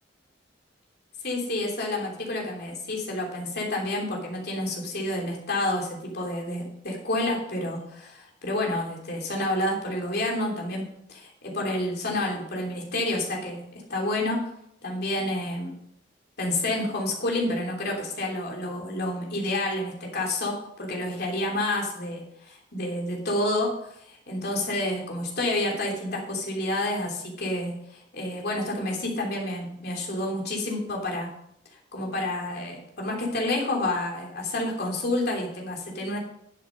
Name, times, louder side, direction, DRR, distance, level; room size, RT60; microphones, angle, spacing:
voice 1, 1.2-13.6 13.9-14.4 14.8-15.7 16.4-31.3 31.9-36.2, left 1 dB, 60° left, -1 dB, 3.2 m, -29 dB
11.0 x 7.4 x 5.3 m, 0.73 s
head